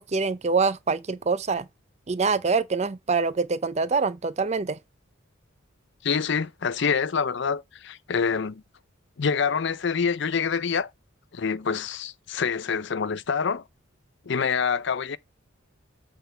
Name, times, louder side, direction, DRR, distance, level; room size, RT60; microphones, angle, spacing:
voice 1, 0.0-1.7 2.1-4.8, right 4 dB, 35° right, 0.5 m, -25 dB
voice 2, 6.0-8.6 9.2-10.9 11.3-13.6 14.3-15.2, left 6 dB, 60° left, 0.5 m, -26 dB
8.0 x 3.5 x 5.5 m
head